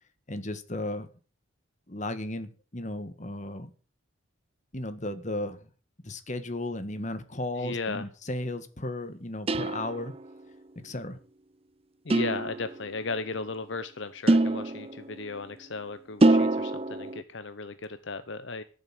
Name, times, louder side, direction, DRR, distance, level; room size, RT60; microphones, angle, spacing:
voice 1, 0.3-1.1 1.9-3.7 4.7-5.7 6.0-10.1 10.7-11.2, left 1 dB, 35° left, 10 dB, 1.6 m, -35 dB
voice 2, 7.6-8.0 12.0-18.6, left 3 dB, 65° left, 12 dB, 0.9 m, -36 dB
sound 1, 9.5-10.3 12.1-13.0 14.3-15.3 16.2-17.2, right 2 dB, 30° right, 0.6 m, -25 dB
13.5 x 8.0 x 7.5 m, 0.39 s
head